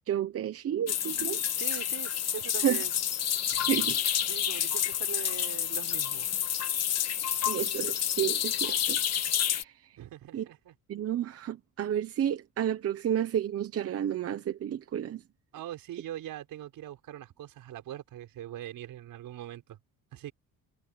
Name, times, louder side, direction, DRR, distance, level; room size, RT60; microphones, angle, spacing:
voice 1, 0.1-1.4 2.6-2.8 3.6-4.0 7.5-9.0 9.4-9.7 10.3-10.5 10.9-15.2, right 10 dB, 45° right, 1.0 m, -31 dB
sound 1, 0.9-9.6, left 9 dB, 50° left, 1.7 m, -29 dB
voice 2, 1.5-2.9 4.3-6.3 10.0-10.7 15.5-19.8 20.1-20.3, right 12 dB, 80° right, 5.5 m, -42 dB
cardioid pair, 170°, 33 cm